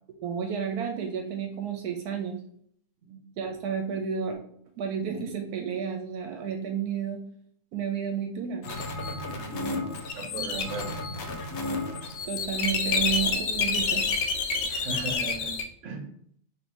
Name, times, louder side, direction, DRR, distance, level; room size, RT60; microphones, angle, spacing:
voice 1, 0.2-2.4 3.4-4.4 4.8-7.2 7.7-8.7 12.2-14.0, right 7 dB, 80° right, 3 dB, 1.1 m, -31 dB
sound 1, 8.6-15.6, left 4 dB, 90° left, 1.1 m, -29 dB
voice 2, 9.4-11.0 14.7-15.6 15.8-16.1, right 3 dB, 60° right, 3 dB, 1.1 m, -37 dB
3.1 x 2.7 x 4.4 m, 0.64 s
omnidirectional pair, 1.7 m